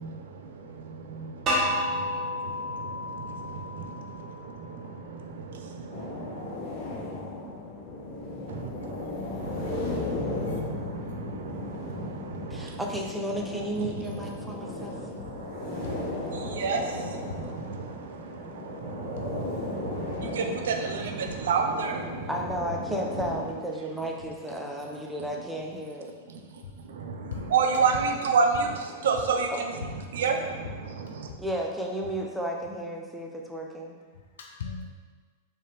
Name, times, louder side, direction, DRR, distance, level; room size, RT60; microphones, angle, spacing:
voice 1, 0.0-6.6 8.5-9.1 9.4-12.8 13.7-22.3 22.8-22.9 26.3-26.4 26.8-31.3, right 5 dB, 75° right, 0.6 m, -32 dB
sound 1, 1.5-4.4, left 1 dB, 30° right, 1.1 m, -30 dB
sound 2, 5.9-23.5, left 2 dB, 50° left, 1.1 m, -36 dB
voice 2, 9.2-9.7 10.5-10.6 15.3-15.5 15.8-16.0 16.5-16.6 27.3-27.5 31.3-31.4 34.4-34.9, left 6 dB, 75° left, 0.5 m, -40 dB
voice 3, 12.5-14.9 22.3-26.1 29.5-29.6 31.4-33.9, equal, 5° right, 0.6 m, -33 dB
4.3 x 3.4 x 3.4 m
hypercardioid pair, 115°, 0 cm